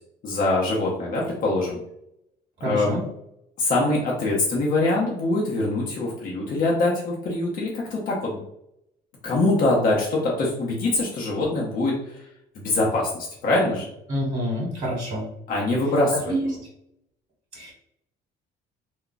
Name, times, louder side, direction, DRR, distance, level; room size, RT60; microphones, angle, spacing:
voice 1, 0.2-1.8 2.6-3.0 3.6-8.4 9.2-12.2 12.6-13.9 15.5-16.3, left 2 dB, 55° left, -3 dB, 0.8 m, -23 dB
voice 2, 2.6-3.0 14.1-15.2 16.2-16.6 17.5-17.7, equal, 35° right, -4 dB, 1.1 m, -27 dB
2.3 x 2.2 x 3.9 m, 0.78 s
cardioid pair, 110°, 17 cm